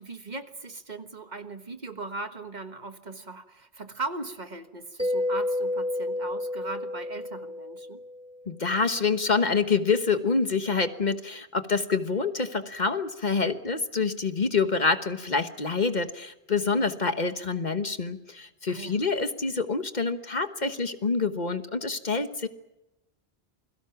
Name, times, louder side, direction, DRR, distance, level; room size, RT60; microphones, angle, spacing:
voice 1, 0.0-8.0 18.7-19.0, right 3 dB, 45° right, 9 dB, 1.5 m, -38 dB
Mallet percussion, 5.0-8.5, left 1 dB, 5° right, 1.1 m, -30 dB
voice 2, 8.5-22.5, left 4 dB, 45° left, 10 dB, 1.4 m, -27 dB
28.5 x 22.0 x 5.9 m, 0.94 s
omnidirectional pair, 1.1 m